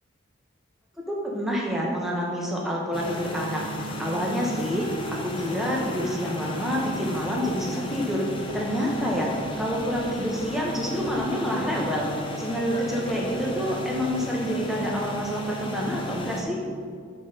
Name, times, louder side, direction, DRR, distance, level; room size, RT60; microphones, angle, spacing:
voice 1, 1.0-8.3 8.5-12.1 12.4-16.6, equal, ahead, -3 dB, 1.0 m, -28 dB
sound 1, 2.9-16.4, left 1 dB, 25° left, 0.6 m, -35 dB
8.3 x 4.1 x 5.1 m, 2.1 s
head